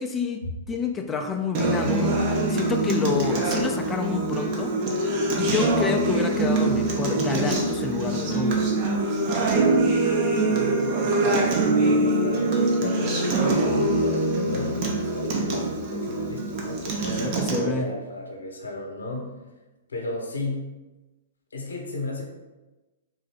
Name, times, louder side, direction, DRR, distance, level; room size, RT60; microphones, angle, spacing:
voice 1, 0.0-5.1 5.4-8.6 17.2-17.9, left 4 dB, 15° left, 4 dB, 0.3 m, -29 dB
Acoustic guitar, 1.5-17.6, right 2 dB, 45° right, 0.8 m, -24 dB
voice 2, 10.2-19.3 19.9-20.7 21.5-22.2, left 2 dB, 85° left, 1 dB, 0.8 m, -35 dB
3.6 x 2.6 x 3.4 m, 1.1 s
hypercardioid pair, 120°, 0 cm